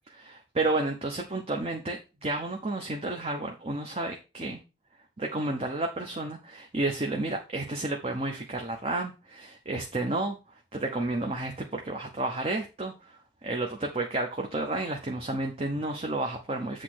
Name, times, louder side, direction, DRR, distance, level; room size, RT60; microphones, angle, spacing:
voice 1, 0.1-4.6 5.2-10.4 10.7-12.9 13.4-16.8, right 2 dB, 35° right, 2 dB, 0.9 m, -31 dB
8.1 x 3.2 x 6.2 m, 0.30 s
head